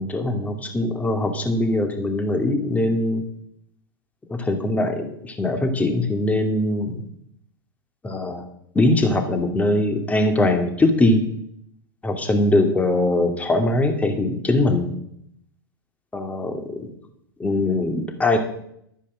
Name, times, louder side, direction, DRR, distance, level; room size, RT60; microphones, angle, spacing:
voice 1, 0.0-3.2 4.3-7.0 8.0-8.4 8.7-11.2 12.0-14.9 16.1-16.6 17.4-18.4, left 2 dB, 10° left, 5 dB, 2.3 m, -21 dB
12.5 x 9.9 x 6.4 m, 0.72 s
figure-of-eight pair, 95°, 13 cm